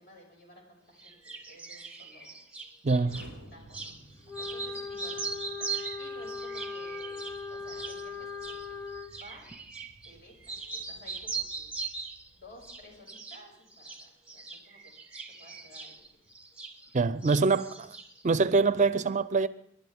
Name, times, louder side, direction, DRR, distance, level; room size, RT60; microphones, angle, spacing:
voice 1, 0.0-2.4 3.2-3.9 4.4-9.5 10.0-11.8 12.3-14.9 15.4-16.3 17.5-17.8, equal, 55° left, 5.9 m, -54 dB
sound 1, 1.0-3.3 3.7-4.0 4.3-10.2 10.4-12.3 12.6-13.4 13.7-17.0 17.2-18.2, right 4 dB, 5° right, 1.1 m, -40 dB
voice 2, 2.8-3.2 16.9-17.7 18.2-19.5, right 4 dB, 40° right, 0.5 m, -24 dB
Explosion, 3.0-13.0, right 1 dB, 90° left, 4.8 m, -56 dB
Wind instrument woodwind instrument, 4.3-9.1, left 4 dB, 10° left, 1.4 m, -39 dB
28.0 x 11.5 x 3.5 m
head